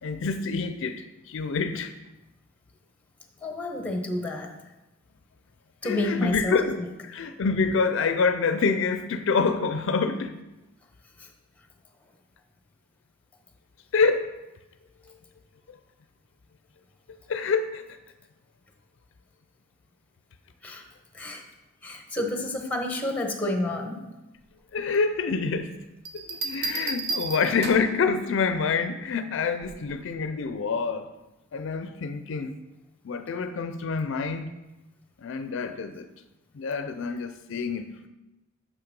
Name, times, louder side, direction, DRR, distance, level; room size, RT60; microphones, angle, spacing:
voice 1, 0.0-1.9 5.8-10.4 13.9-14.3 17.3-17.8 24.7-25.7 26.1-31.1 31.5-32.5 33.0-34.5 35.2-36.1 36.5-38.1, left 5 dB, 65° left, 0.4 m, -27 dB
voice 2, 3.4-4.5 5.8-6.9 11.2-11.3 20.6-20.8 21.1-21.4 21.8-24.0, left 1 dB, 10° left, 1.0 m, -30 dB
sound 1, 26.1-28.0 29.6-30.0, right 3 dB, 55° right, 0.9 m, -32 dB
6.8 x 5.7 x 5.2 m
head